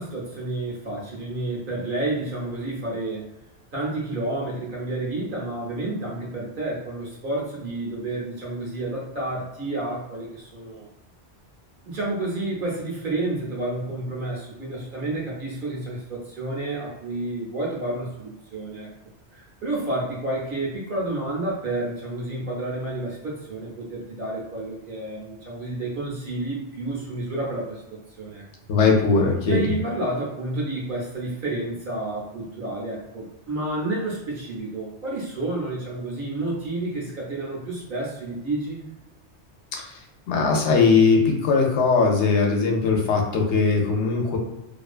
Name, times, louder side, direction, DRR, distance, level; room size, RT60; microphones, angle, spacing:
voice 1, 0.0-3.3 3.7-10.9 11.8-18.9 19.3-28.4 29.4-38.8, right 2 dB, 55° right, -4 dB, 0.8 m, -30 dB
voice 2, 28.7-29.8 39.7-40.0 40.3-44.4, left 4 dB, 80° left, 1 dB, 0.9 m, -20 dB
2.5 x 2.2 x 2.4 m, 0.93 s
omnidirectional pair, 1.2 m